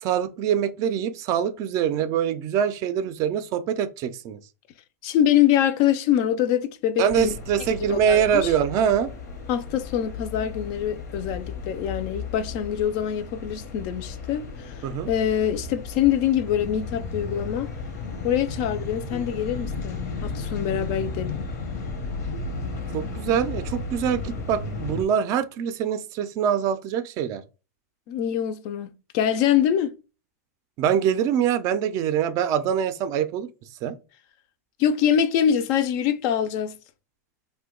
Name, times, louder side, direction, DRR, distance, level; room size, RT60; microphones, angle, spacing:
voice 1, 0.0-4.4 7.0-9.1 14.8-15.1 22.9-27.4 30.8-33.5 33.8-33.9, right 8 dB, 40° right, 0.4 m, -24 dB
voice 2, 5.0-7.3 7.9-8.5 9.5-17.7 18.2-21.3 28.1-29.9 34.8-36.8, left 10 dB, 45° left, 0.4 m, -24 dB
sound 1, 7.1-25.0, left 4 dB, 80° left, 0.9 m, -34 dB
2.8 x 2.2 x 3.6 m
hypercardioid pair, 130°, 9 cm